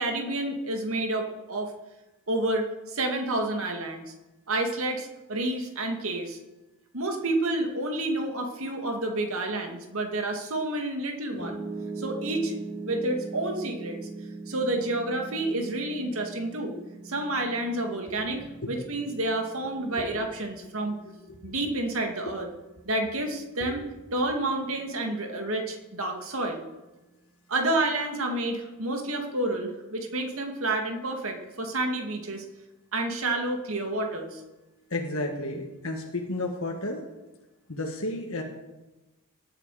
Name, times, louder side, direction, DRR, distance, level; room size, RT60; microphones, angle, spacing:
voice 1, 0.0-1.7 2.3-4.1 4.5-6.4 6.9-11.6 12.0-12.5 12.9-14.0 14.5-16.7 17.0-20.9 21.4-22.5 22.9-26.6 27.5-32.4 32.9-34.4, right 2 dB, 65° right, 3 dB, 2.3 m, -29 dB
Piano, 11.4-23.6, right 3 dB, 5° left, 1.9 m, -41 dB
voice 2, 34.9-37.0 37.7-38.4, left 2 dB, 65° left, 1 dB, 1.6 m, -32 dB
18.5 x 10.0 x 5.0 m, 1.1 s
head